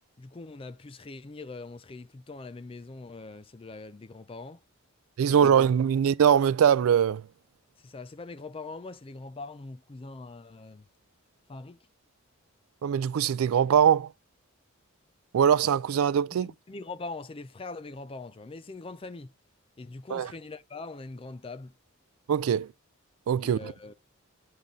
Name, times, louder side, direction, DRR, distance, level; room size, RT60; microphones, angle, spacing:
voice 1, 0.2-4.6 5.2-5.6 7.8-10.9 11.5-11.8 16.3-19.3 19.8-21.7 23.4-23.9, left 3 dB, 25° left, 0.4 m, -42 dB
voice 2, 5.2-7.3 12.8-14.1 15.3-16.5 20.1-20.3 22.3-22.7 23.3-23.7, right 8 dB, 85° right, 0.3 m, -22 dB
8.6 x 3.9 x 3.6 m
head